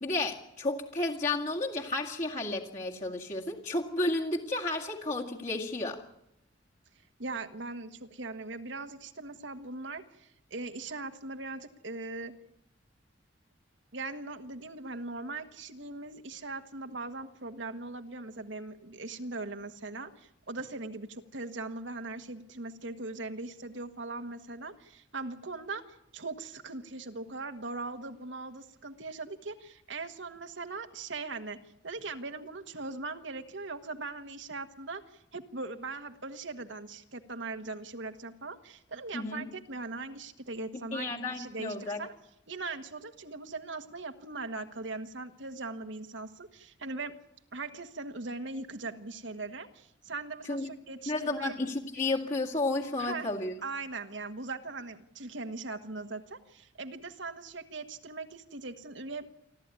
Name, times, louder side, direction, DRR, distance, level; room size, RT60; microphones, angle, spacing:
voice 1, 0.0-6.0 39.1-39.5 40.9-42.0 50.4-50.7 51.1-53.5, left 2 dB, 40° left, -2 dB, 2.1 m, -32 dB
voice 2, 7.2-12.3 13.9-25.8 26.1-31.6 31.8-35.0 35.3-42.1 42.5-47.2 47.5-51.6 53.0-53.3 53.6-59.3, right 3 dB, 70° right, 7 dB, 1.5 m, -40 dB
29.0 x 13.0 x 9.7 m, 0.81 s
head